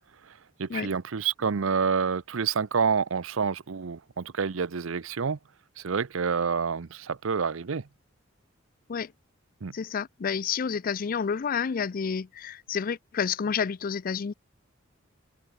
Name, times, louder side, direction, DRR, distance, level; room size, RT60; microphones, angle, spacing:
voice 1, 0.2-5.4 5.8-7.9 9.6-9.7, right 6 dB, 80° right, 0.6 m, -28 dB
voice 2, 9.7-14.3, left 6 dB, 45° left, 0.4 m, -29 dB
open air
head